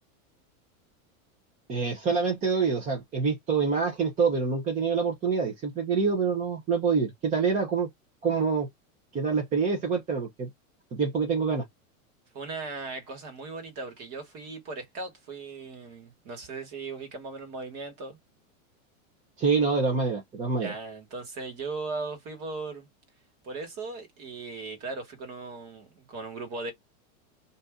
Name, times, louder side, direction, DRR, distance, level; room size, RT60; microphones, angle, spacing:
voice 1, 1.7-7.9 8.2-8.7 9.1-10.5 10.9-11.6 19.4-20.7, right 5 dB, 15° right, 0.7 m, -26 dB
voice 2, 12.3-18.2 20.6-22.9 23.4-26.7, right 3 dB, 35° right, 1.5 m, -38 dB
2.6 x 2.6 x 3.5 m
supercardioid pair, 155°, 43 cm